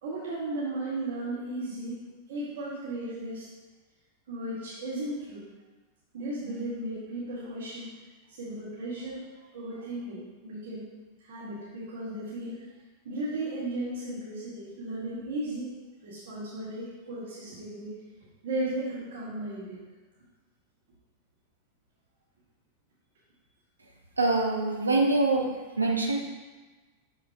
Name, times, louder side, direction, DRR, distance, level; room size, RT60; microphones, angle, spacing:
voice 1, 0.0-2.0 2.3-3.5 4.3-5.4 6.1-7.9 8.3-9.2 9.5-10.9 11.2-12.6 13.0-17.9 18.4-19.8, right 1 dB, 60° right, -10 dB, 2.1 m, -35 dB
voice 2, 24.2-25.5 25.8-26.3, right 2 dB, 80° right, 1 dB, 0.8 m, -24 dB
7.2 x 6.7 x 2.4 m, 1.2 s
figure-of-eight pair, 90°, 0 cm